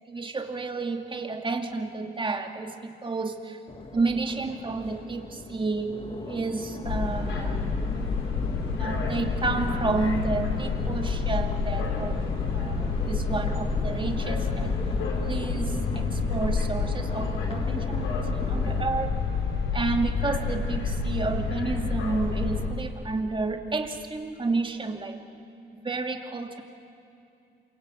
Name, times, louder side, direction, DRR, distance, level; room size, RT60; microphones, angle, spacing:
voice 1, 0.1-3.6 3.9-6.0 6.3-7.6 8.8-14.8 15.2-19.2 19.7-25.2 25.7-26.6, right 3 dB, 25° right, 4 dB, 2.5 m, -31 dB
Crowd, 3.7-18.8, left 3 dB, 30° left, 1.8 m, -39 dB
sound 1, 6.8-22.7, left 4 dB, 85° left, 4.4 m, -28 dB
27.0 x 24.0 x 9.2 m, 2.6 s
cardioid pair, 90°, 20 cm